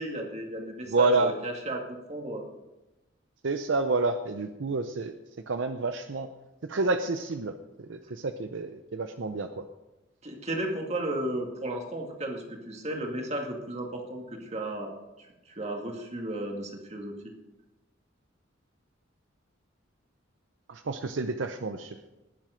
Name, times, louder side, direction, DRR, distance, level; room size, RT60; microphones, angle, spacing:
voice 1, 0.0-2.4 10.2-14.9 15.2-17.1, right 1 dB, 35° right, 2 dB, 2.1 m, -34 dB
voice 2, 0.9-1.3 3.4-5.1 5.5-6.3 6.7-7.5 7.9-9.5 20.7-22.0, right 3 dB, 70° right, 8 dB, 0.6 m, -28 dB
19.0 x 7.6 x 5.1 m, 1.0 s
head